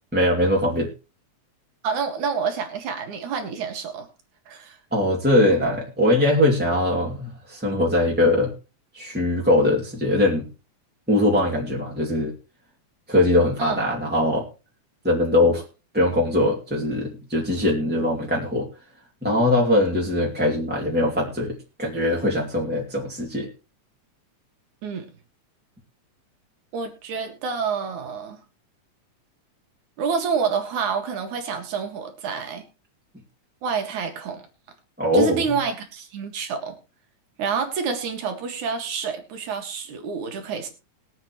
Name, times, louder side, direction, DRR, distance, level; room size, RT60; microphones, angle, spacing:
voice 1, 0.1-0.9 4.9-8.5 8.9-10.4 11.1-12.3 13.1-14.5 15.0-15.6 15.9-18.7 19.2-23.5 35.0-35.4, left 1 dB, 5° right, -3 dB, 2.0 m, -21 dB
voice 2, 1.8-4.1 4.5-4.8 13.6-13.9 24.8-25.1 26.7-28.4 30.0-32.6 33.6-34.4 35.1-36.7 37.4-40.7, right 6 dB, 85° right, 5 dB, 3.3 m, -28 dB
21.5 x 8.0 x 3.1 m, 0.31 s
omnidirectional pair, 3.4 m